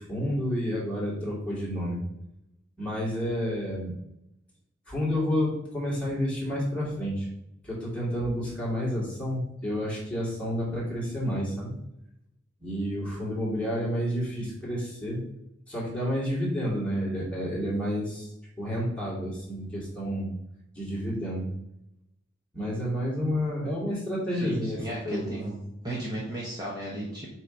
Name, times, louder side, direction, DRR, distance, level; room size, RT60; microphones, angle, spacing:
voice 1, 0.0-2.0 2.8-3.9 4.9-7.3 7.6-11.7 12.6-15.2 15.7-18.3 18.6-20.3 20.7-21.5 22.5-25.6, equal, 5° left, -7 dB, 2.5 m, -30 dB
voice 2, 24.3-25.5 25.8-27.3, right 1 dB, 20° right, -5 dB, 1.3 m, -35 dB
6.5 x 3.1 x 5.3 m, 0.82 s
head